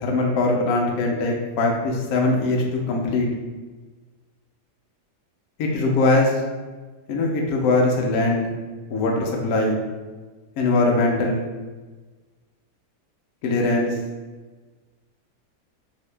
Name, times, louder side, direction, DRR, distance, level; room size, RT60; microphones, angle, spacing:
voice 1, 0.0-3.3 5.6-6.3 7.1-8.5 8.9-9.8 10.6-11.4 13.4-13.9, left 2 dB, 70° left, 0 dB, 0.9 m, -21 dB
2.9 x 2.7 x 3.2 m, 1.3 s
omnidirectional pair, 1.8 m